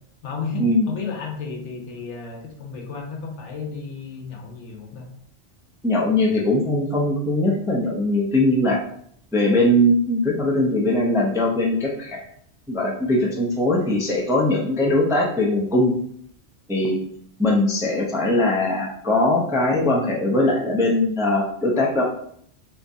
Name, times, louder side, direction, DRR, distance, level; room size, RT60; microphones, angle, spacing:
voice 1, 0.2-5.1, left 5 dB, 75° left, 1 dB, 1.0 m, -33 dB
voice 2, 5.8-8.8 9.3-12.2 12.7-15.9 16.7-17.0 17.4-22.0, left 1 dB, 5° right, -3 dB, 0.3 m, -20 dB
3.4 x 3.0 x 2.6 m, 0.67 s
omnidirectional pair, 1.2 m